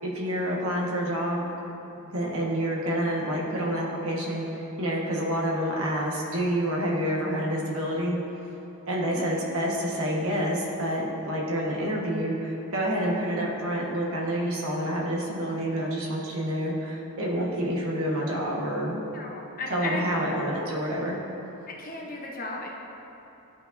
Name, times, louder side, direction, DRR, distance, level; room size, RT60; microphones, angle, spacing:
voice 1, 0.0-1.5 2.0-8.2 8.9-19.0 19.7-21.2, equal, 65° right, -3 dB, 1.3 m, -28 dB
voice 2, 19.1-20.0 21.8-22.7, left 3 dB, 40° left, -1 dB, 0.8 m, -35 dB
12.5 x 5.4 x 2.6 m, 3.0 s
head